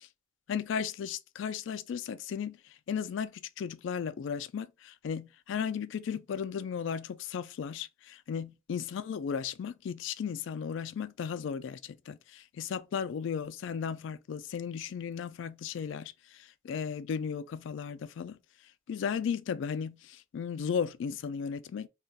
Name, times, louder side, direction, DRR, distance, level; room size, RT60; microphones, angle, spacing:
voice 1, 0.5-2.6 2.9-16.1 16.6-18.4 18.9-21.9, left 7 dB, 65° left, 0.3 m, -35 dB
2.4 x 2.2 x 3.9 m
head